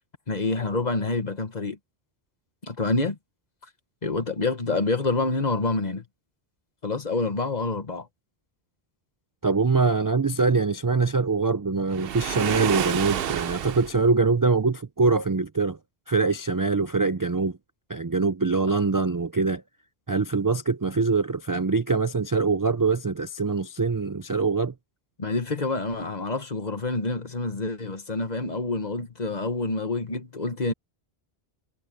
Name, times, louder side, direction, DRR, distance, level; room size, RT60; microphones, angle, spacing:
voice 1, 0.3-1.8 2.6-3.2 4.0-6.0 6.8-8.1 25.2-30.7, left 3 dB, 45° left, 1.5 m, -27 dB
voice 2, 9.4-15.8 16.1-17.6 17.9-19.6 20.1-24.7, right 4 dB, 35° right, 0.3 m, -23 dB
Waves surf, 11.9-14.0, right 9 dB, 65° right, 0.9 m, -29 dB
omnidirectional pair, 1.1 m